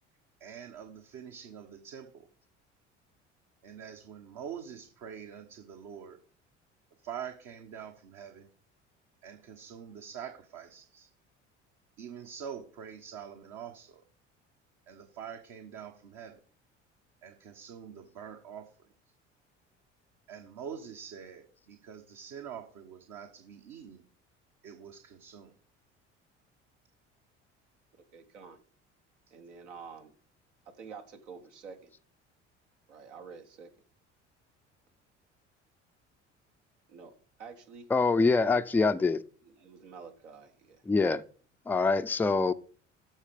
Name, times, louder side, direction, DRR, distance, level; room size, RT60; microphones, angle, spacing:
voice 1, 0.4-2.3 3.6-6.2 7.0-8.4 9.2-11.1 12.0-14.0 14.9-16.4 17.2-18.6 20.3-24.0 24.6-25.5, right 8 dB, 55° right, 3 dB, 1.3 m, -45 dB
voice 2, 27.9-28.6 29.3-30.1 30.8-31.8 32.9-33.7 36.9-37.1 37.4-37.9 38.8-39.0 39.4-40.8, right 5 dB, 75° right, 5 dB, 1.5 m, -48 dB
voice 3, 37.9-39.2 40.9-41.2 41.7-42.5, left 4 dB, 5° left, 9 dB, 0.4 m, -25 dB
13.5 x 4.5 x 5.2 m, 0.43 s
figure-of-eight pair, 60°, 35 cm